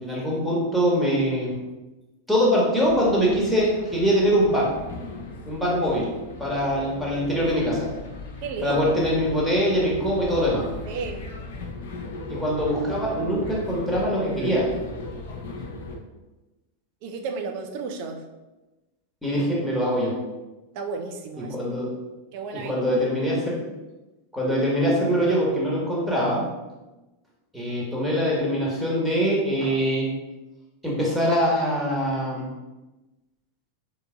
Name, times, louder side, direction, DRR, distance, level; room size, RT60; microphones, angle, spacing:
voice 1, 0.0-1.5 2.3-4.7 5.4-6.1 6.4-7.9 8.6-10.7 12.3-14.7 19.2-20.2 21.4-22.0 22.5-23.6 24.3-26.4 27.5-30.1 30.8-32.5, equal, ahead, -6 dB, 1.3 m, -23 dB
sound 1, 2.8-16.0, left 2 dB, 55° left, 0.6 m, -38 dB
voice 2, 8.4-8.8 10.9-11.3 17.0-18.2 20.7-21.6 22.3-23.0, right 4 dB, 45° right, 5 dB, 0.5 m, -33 dB
4.9 x 3.8 x 2.3 m, 1.1 s
figure-of-eight pair, 90°, 0 cm